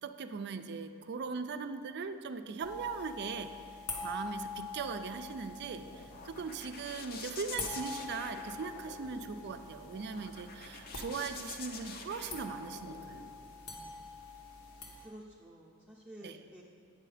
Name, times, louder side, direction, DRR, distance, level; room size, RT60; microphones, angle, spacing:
voice 1, 0.0-3.5 4.0-13.2 16.2-16.4, right 5 dB, 50° right, 9 dB, 0.4 m, -40 dB
sound 1, 2.6-15.1, left 3 dB, 85° left, 1.3 m, -45 dB
sound 2, 5.4-13.3, left 4 dB, 45° left, 0.6 m, -47 dB
voice 2, 13.6-14.2 15.0-16.6, right 1 dB, 5° right, -6 dB, 0.7 m, -52 dB
8.7 x 6.1 x 4.9 m, 2.5 s
head